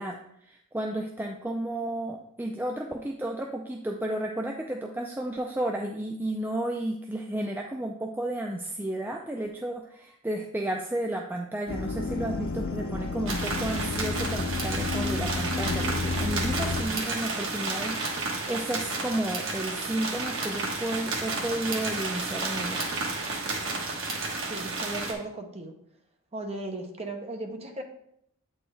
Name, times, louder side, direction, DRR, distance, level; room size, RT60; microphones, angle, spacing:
voice 1, 0.0-22.8, right 1 dB, 10° right, 2 dB, 0.4 m, -32 dB
sound 1, 11.7-16.8, left 3 dB, 80° left, 0.7 m, -31 dB
sound 2, 13.3-25.1, right 3 dB, 65° right, 1.3 m, -32 dB
voice 2, 24.2-25.7 26.3-27.8, right 2 dB, 30° right, 4 dB, 0.8 m, -37 dB
8.3 x 4.4 x 3.3 m, 0.73 s
head